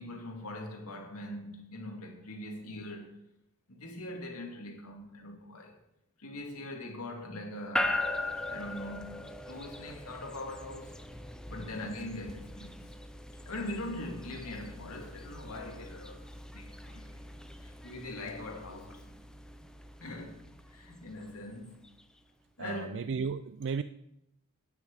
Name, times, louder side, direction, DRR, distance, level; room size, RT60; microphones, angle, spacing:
voice 1, 0.0-3.2 3.7-5.8 6.2-8.0 8.5-11.0 11.5-12.9 13.5-16.3 16.5-17.2 17.6-19.2 20.0-21.8 22.6-23.0, left 1 dB, 80° left, 2.3 m, -42 dB
sound 1, 7.8-22.0, left 1 dB, 5° left, 0.6 m, -40 dB
voice 2, 22.6-23.8, right 5 dB, 55° right, 0.4 m, -34 dB
10.5 x 6.2 x 8.0 m
head